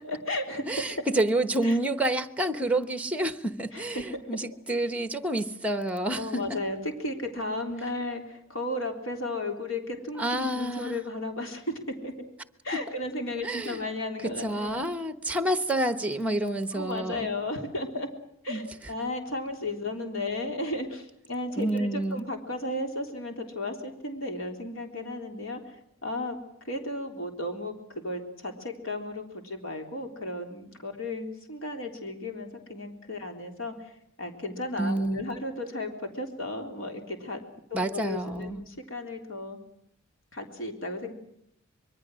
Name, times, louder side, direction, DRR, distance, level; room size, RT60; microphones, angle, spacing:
voice 1, 0.1-0.9 1.6-1.8 3.7-4.3 6.2-12.3 12.6-14.9 16.7-18.1 18.4-37.4 37.7-39.6 40.3-41.1, left 1 dB, 75° left, 3 dB, 3.7 m, -34 dB
voice 2, 0.7-6.4 10.2-11.0 13.4-13.9 14.4-17.3 18.5-18.7 21.6-22.3 34.8-35.3 37.7-38.6, right 1 dB, 5° right, 11 dB, 1.0 m, -28 dB
25.5 x 22.5 x 6.3 m, 0.74 s
head